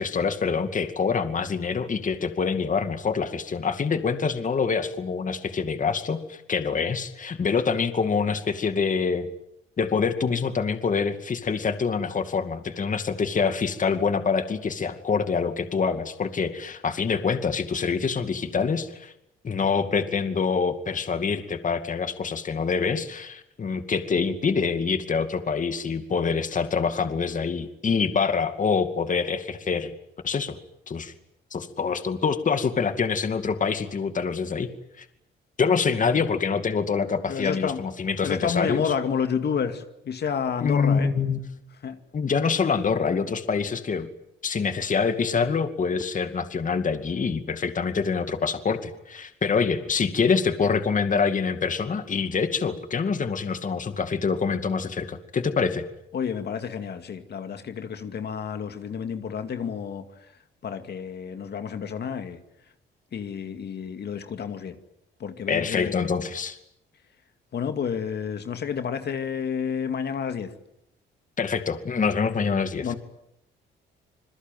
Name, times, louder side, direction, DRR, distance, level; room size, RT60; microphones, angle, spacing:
voice 1, 0.0-9.3 9.8-19.1 19.4-29.9 30.2-30.6 30.9-31.1 31.5-34.7 35.0-35.1 35.6-38.9 40.6-41.5 42.1-44.1 44.4-55.8 65.5-66.6 71.4-72.9, left 5 dB, 40° left, 8 dB, 2.4 m, -25 dB
voice 2, 37.3-37.8 38.2-41.1 41.8-42.0 56.1-60.1 60.6-62.4 63.1-64.7 65.2-66.1 67.5-70.5 72.8-72.9, left 7 dB, 55° left, 7 dB, 2.4 m, -30 dB
27.5 x 21.5 x 9.3 m, 0.82 s
cardioid pair, 90°, 20 cm